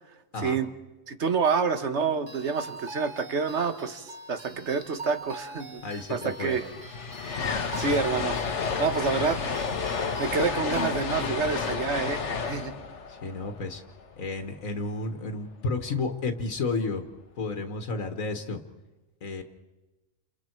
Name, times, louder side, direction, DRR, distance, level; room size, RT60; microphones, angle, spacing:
voice 1, 1.1-6.7 7.8-8.4 8.8-9.4 10.2-12.7, right 5 dB, 60° right, 9 dB, 1.7 m, -28 dB
sound 1, 2.3-11.3, right 2 dB, 40° right, 1.9 m, -43 dB
voice 2, 5.8-6.6 9.0-9.2 13.1-13.8 14.2-17.0 17.4-18.6 19.2-19.4, left 3 dB, 85° left, 6 dB, 1.9 m, -32 dB
sound 2, 5.9-6.0 6.2-14.4, left 5 dB, 60° left, 1.5 m, -31 dB
30.0 x 28.5 x 4.6 m, 1.1 s
omnidirectional pair, 1.4 m